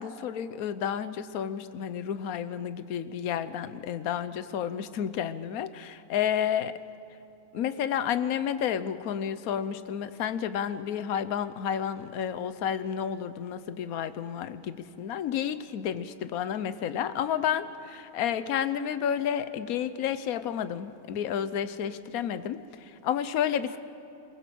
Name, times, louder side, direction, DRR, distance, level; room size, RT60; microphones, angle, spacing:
voice 1, 0.0-6.8 7.5-23.8, left 9 dB, 70° left, 13 dB, 1.2 m, -31 dB
22.5 x 20.5 x 7.7 m, 2.9 s
omnidirectional pair, 1.6 m